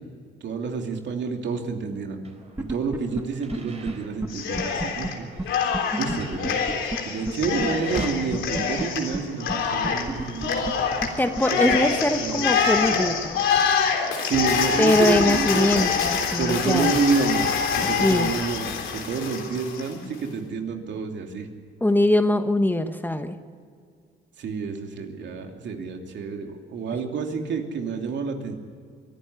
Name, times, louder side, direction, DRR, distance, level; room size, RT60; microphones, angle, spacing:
voice 1, 0.4-2.2 2.6-5.3 6.0-6.6 7.0-10.7 11.5-11.9 12.2-12.4 14.2-15.9 16.4-17.5 17.8-21.5 24.4-28.5, right 5 dB, 65° right, 3 dB, 2.8 m, -28 dB
sound 1, 2.2-8.1, right 3 dB, 35° right, 4.4 m, -43 dB
sound 2, 2.6-3.2 3.5-3.6 3.9-4.0 4.2-4.3 4.6-5.1 5.4-5.5 5.7-5.8 6.1-7.0 7.3-7.4 7.6-7.7 8.0-8.1 8.3-8.8 9.1-9.2 9.5-9.6 9.8-10.7 11.0-11.1 11.4-11.5 11.7-11.8, right 2 dB, 10° right, 1.2 m, -29 dB
Cheering, 4.3-5.1 5.4-19.9, left 6 dB, 80° left, 3.6 m, -25 dB
voice 2, 11.2-13.4 14.8-16.9 18.0-18.3 21.8-23.4, left 1 dB, 10° left, 8 dB, 1.2 m, -22 dB
23.0 x 12.0 x 9.9 m, 2.2 s
cardioid pair, 90°, 20 cm